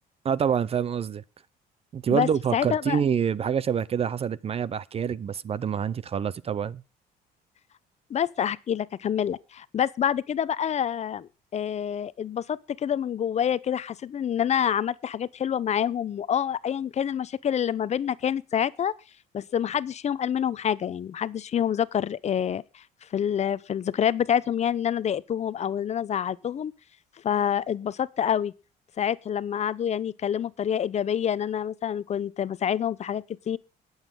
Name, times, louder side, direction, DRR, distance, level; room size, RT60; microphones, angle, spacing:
voice 1, 0.2-1.2 1.9-6.8, right 7 dB, 35° right, 0.6 m, -26 dB
voice 2, 2.1-3.0 8.1-18.9 19.3-22.8 23.1-26.7 27.2-28.5 29.0-33.6, left 9 dB, 40° left, 0.7 m, -27 dB
21.0 x 8.1 x 3.7 m
cardioid pair, 110°, 17 cm